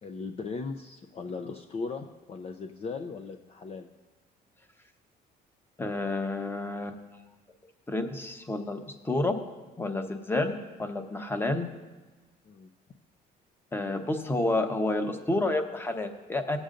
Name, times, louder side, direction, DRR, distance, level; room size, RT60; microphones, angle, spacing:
voice 1, 0.0-3.9 12.4-12.7, left 4 dB, 35° left, 5 dB, 0.6 m, -38 dB
voice 2, 5.8-6.9 7.9-9.4 9.8-11.7 13.7-16.6, left 2 dB, 15° left, 6 dB, 0.9 m, -29 dB
18.0 x 8.0 x 2.5 m, 1.2 s
cardioid pair, 110°, 17 cm